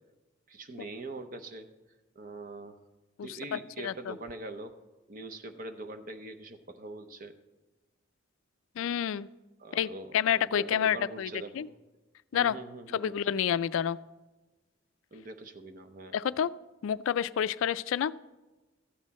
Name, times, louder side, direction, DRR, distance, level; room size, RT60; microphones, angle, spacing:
voice 1, 0.5-1.7 2.1-2.8 3.2-4.7 5.1-7.4 9.6-11.7 12.3-13.1 15.1-16.2, right 2 dB, 45° right, 8 dB, 0.8 m, -43 dB
voice 2, 3.2-4.1 8.8-9.3 9.7-11.3 11.5-11.7 12.3-12.6 12.9-14.0 16.1-16.5 16.8-18.1, left 9 dB, 80° left, 17 dB, 0.3 m, -29 dB
13.0 x 8.1 x 4.2 m, 1.1 s
head